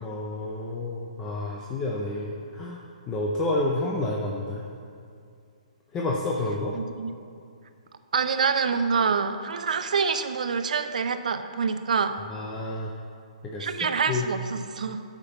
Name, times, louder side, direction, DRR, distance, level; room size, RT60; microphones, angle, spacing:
voice 1, 0.0-2.8 3.1-4.6 5.9-6.7 12.3-12.9 13.4-13.7 14.1-14.3, left 2 dB, 15° left, -2 dB, 0.6 m, -29 dB
voice 2, 6.7-7.1 8.1-12.2 13.6-15.0, right 5 dB, 75° right, 9 dB, 0.7 m, -26 dB
9.7 x 6.0 x 6.7 m, 2.4 s
hypercardioid pair, 165°, 4 cm